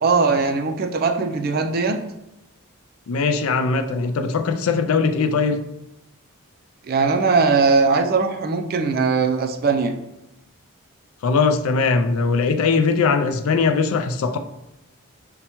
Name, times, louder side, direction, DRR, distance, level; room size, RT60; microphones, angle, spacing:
voice 1, 0.0-2.0 6.9-9.9, right 4 dB, 40° right, 5 dB, 0.3 m, -20 dB
voice 2, 3.1-5.6 11.2-14.4, left 4 dB, 75° left, 8 dB, 0.4 m, -20 dB
5.4 x 2.2 x 2.9 m, 0.88 s
head